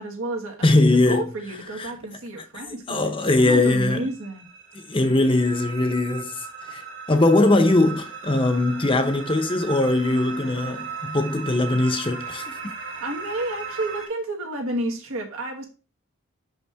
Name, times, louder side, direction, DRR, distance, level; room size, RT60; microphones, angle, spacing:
voice 1, 0.0-3.1 3.4-4.5 13.0-15.7, right 2 dB, 80° right, 1.7 m, -31 dB
voice 2, 0.6-1.3 1.8-1.9 2.9-4.0 4.7-12.6, left 2 dB, 25° left, 0.7 m, -21 dB
sound 1, 3.5-14.1, right 5 dB, 55° right, 1.7 m, -37 dB
5.9 x 5.6 x 3.4 m
head